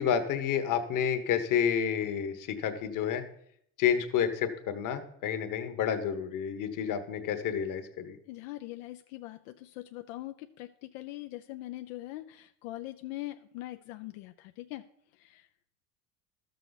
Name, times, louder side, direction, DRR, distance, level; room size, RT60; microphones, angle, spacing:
voice 1, 0.0-3.2 3.8-8.2, left 8 dB, 55° left, 8 dB, 1.2 m, -30 dB
voice 2, 8.3-14.8 15.1-15.5, left 16 dB, 90° left, 7 dB, 0.5 m, -42 dB
12.5 x 6.6 x 4.0 m, 0.71 s
supercardioid pair, 110°, 38 cm